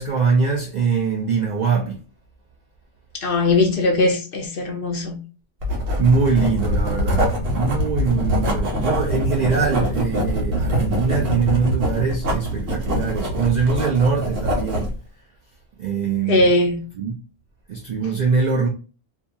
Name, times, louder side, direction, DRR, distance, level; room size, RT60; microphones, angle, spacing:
voice 1, 0.0-2.0 6.0-14.9 15.8-16.6 16.9-17.2 17.7-18.7, right 5 dB, 65° right, 0.4 m, -22 dB
voice 2, 3.2-5.2 16.3-16.8, left 2 dB, 60° left, 0.7 m, -19 dB
Writing, 5.6-14.9, equal, 90° right, 1.1 m, -23 dB
2.7 x 2.3 x 2.3 m
omnidirectional pair, 1.2 m